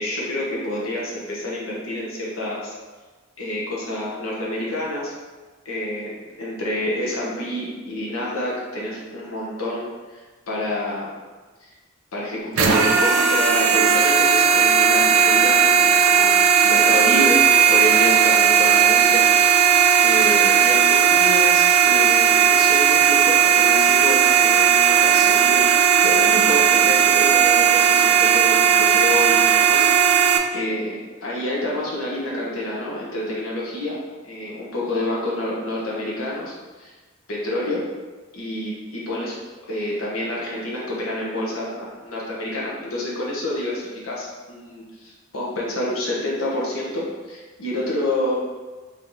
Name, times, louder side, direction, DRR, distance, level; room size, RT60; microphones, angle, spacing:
voice 1, 0.0-2.7 3.4-5.1 5.6-11.1 11.6-11.7 12.1-17.4 17.7-19.7 20.0-30.3 30.5-34.0 34.2-36.9 37.3-37.8 38.3-39.4 39.7-48.3, left 1 dB, 85° left, -5 dB, 0.9 m, -28 dB
sound 1, 12.6-30.4, right 8 dB, 75° right, 0.4 m, -16 dB
3.3 x 2.8 x 3.8 m, 1.3 s
head